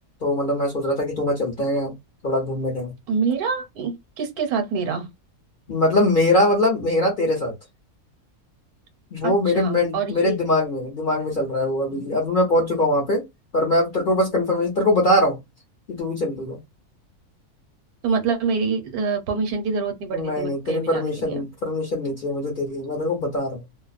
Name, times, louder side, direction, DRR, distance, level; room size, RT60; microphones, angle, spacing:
voice 1, 0.2-1.9 2.2-2.9 5.7-7.5 9.1-13.2 13.5-15.4 15.9-16.6 20.1-23.6, left 1 dB, 45° left, 0.8 m, -22 dB
voice 2, 3.1-5.1 9.2-10.4 11.9-12.1 18.0-21.4, right 5 dB, 75° right, 1.2 m, -26 dB
2.6 x 2.0 x 2.4 m
omnidirectional pair, 1.6 m